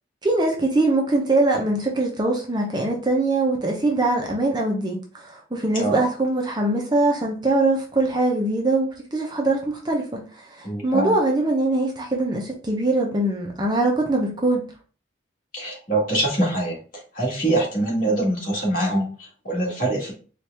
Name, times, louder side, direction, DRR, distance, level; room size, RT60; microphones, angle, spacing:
voice 1, 0.2-14.6, right 2 dB, 20° right, 0 dB, 0.6 m, -22 dB
voice 2, 10.6-11.2 15.5-16.8 17.1-20.1, right 1 dB, 45° left, -3 dB, 1.7 m, -24 dB
4.4 x 2.4 x 3.3 m, 0.39 s
head